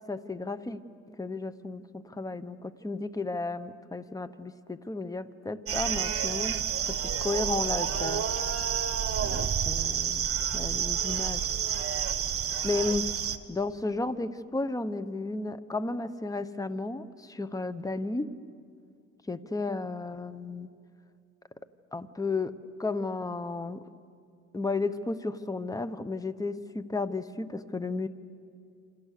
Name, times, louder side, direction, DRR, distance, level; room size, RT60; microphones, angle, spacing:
voice 1, 0.1-0.8 1.1-6.6 6.9-8.2 9.2-10.3 10.5-11.5 12.6-13.1 13.5-18.3 19.3-20.7 21.9-23.8 24.5-28.1, left 3 dB, 10° left, 13 dB, 1.0 m, -33 dB
sound 1, 5.7-13.4, right 8 dB, 50° right, 1.5 m, -29 dB
28.5 x 26.5 x 6.7 m, 2.3 s
cardioid pair, 90°, 30 cm